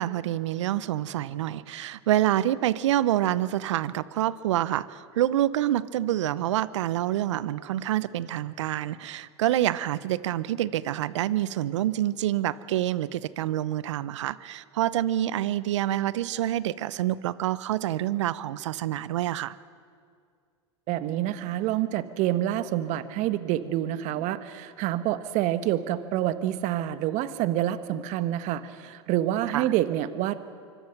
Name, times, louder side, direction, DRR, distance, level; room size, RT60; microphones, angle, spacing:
voice 1, 0.0-19.6 29.5-29.7, right 13 dB, 75° right, 18 dB, 0.7 m, -27 dB
voice 2, 20.9-30.4, right 13 dB, 50° right, 12 dB, 1.3 m, -27 dB
24.5 x 24.0 x 6.0 m, 2.2 s
hypercardioid pair, 90°, 15 cm